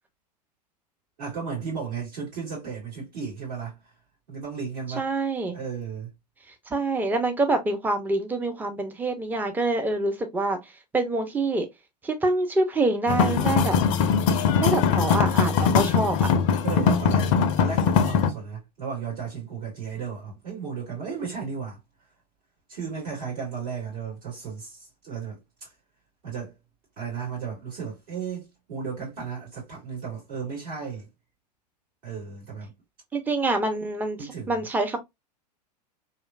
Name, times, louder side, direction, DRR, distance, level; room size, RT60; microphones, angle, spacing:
voice 1, 1.2-3.8 4.3-5.1 5.5-6.1 16.6-21.8 22.7-25.7 26.2-26.5 27.0-31.1 32.0-32.7 34.2-34.6, right 6 dB, 60° right, 2.1 m, -34 dB
voice 2, 5.0-5.6 6.7-11.7 12.0-13.8 14.6-16.3 33.1-35.0, right 2 dB, 10° right, 0.5 m, -26 dB
sound 1, 13.1-18.3, left 6 dB, 50° left, 0.4 m, -21 dB
3.0 x 2.4 x 2.3 m
figure-of-eight pair, 90°, 21 cm